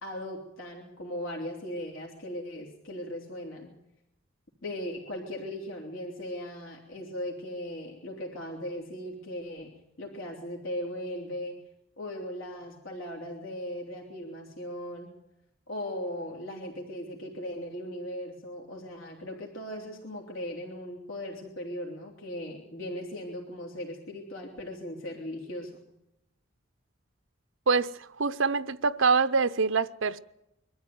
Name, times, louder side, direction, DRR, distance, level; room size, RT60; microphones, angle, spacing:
voice 1, 0.0-3.7 4.6-11.6 12.0-15.1 15.7-25.8, equal, 85° left, 3.4 m, -38 dB
voice 2, 27.7-30.2, right 4 dB, 75° right, 0.7 m, -25 dB
23.0 x 13.5 x 9.5 m
head